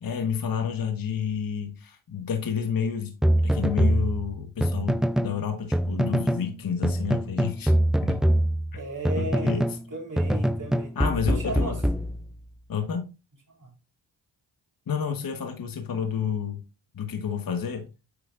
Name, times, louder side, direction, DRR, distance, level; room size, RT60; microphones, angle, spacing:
voice 1, 0.0-3.1 3.4-7.7 8.0-8.2 8.7-8.8 9.2-9.6 10.9-11.7 12.7-13.1 14.9-16.6 16.9-17.9, left 7 dB, 45° left, 1.3 m, -30 dB
sound 1, 3.2-5.4 5.7-6.5 6.8-9.8 10.2-12.6, equal, ahead, 0.3 m, -24 dB
voice 2, 8.8-11.0 11.3-11.8 13.5-13.7, right 2 dB, 40° right, 3.5 m, -35 dB
8.4 x 4.9 x 2.5 m
cardioid pair, 60°, 47 cm